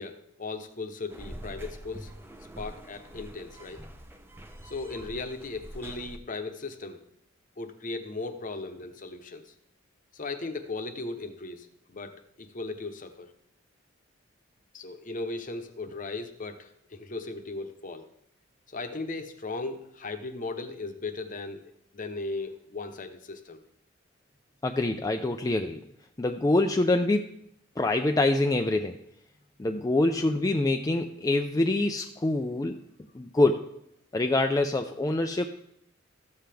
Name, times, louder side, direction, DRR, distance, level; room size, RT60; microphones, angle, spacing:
voice 1, 0.0-2.1 2.6-3.9 4.6-7.0 7.6-9.5 10.1-13.3 14.7-18.1 18.7-21.6 21.9-23.6, left 3 dB, 45° left, 8 dB, 0.9 m, -37 dB
sound 1, 1.1-6.2, equal, 10° right, 0.8 m, -45 dB
voice 2, 24.6-25.8 26.2-27.3 27.8-29.0 29.6-32.8 33.1-33.7 34.1-35.4, left 2 dB, 20° left, 5 dB, 0.4 m, -25 dB
14.0 x 7.6 x 3.4 m, 0.75 s
head